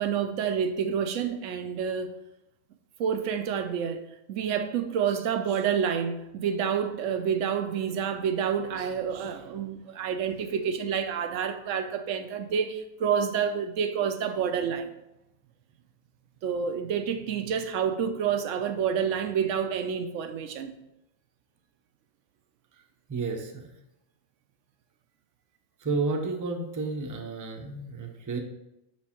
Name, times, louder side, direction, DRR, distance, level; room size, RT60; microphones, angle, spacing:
voice 1, 0.0-2.1 3.0-4.0 4.3-14.9 16.4-20.7, right 7 dB, 85° right, 1.0 m, -28 dB
voice 2, 23.1-23.7 25.8-28.4, right 3 dB, 25° right, 0.5 m, -31 dB
6.0 x 4.5 x 4.3 m
omnidirectional pair, 1.3 m